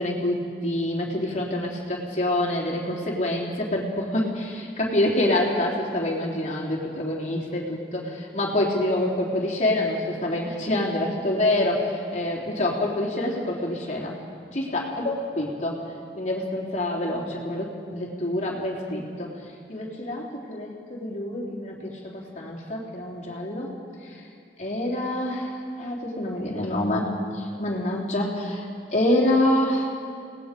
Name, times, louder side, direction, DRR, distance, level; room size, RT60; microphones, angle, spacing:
voice 1, 0.0-14.2 14.5-15.8 16.2-19.4 19.7-23.8 24.0-24.2 24.6-29.9, left 1 dB, 40° left, -3 dB, 3.5 m, -26 dB
29.5 x 19.0 x 5.2 m, 2.3 s
head